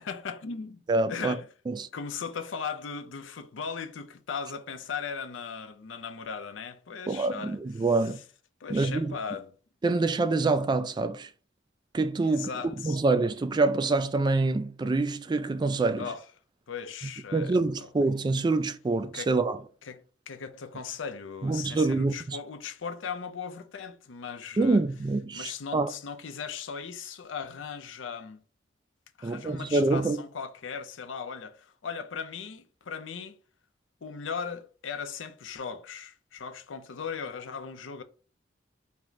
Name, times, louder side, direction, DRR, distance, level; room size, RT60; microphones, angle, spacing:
voice 1, 0.0-0.8 1.1-1.5 1.9-7.8 8.6-9.5 12.2-13.0 16.0-16.3 16.7-17.9 19.1-19.3 19.8-24.8 25.3-28.4 29.2-33.4 34.0-38.0, left 6 dB, 70° left, 0.5 m, -38 dB
voice 2, 0.9-1.3 1.7-1.9 7.1-8.2 8.7-9.2 9.8-11.3 11.9-12.5 12.8-16.1 17.3-19.6 21.4-22.4 24.6-25.9 29.2-30.2, right 3 dB, 25° right, 0.3 m, -26 dB
4.5 x 2.1 x 3.9 m
head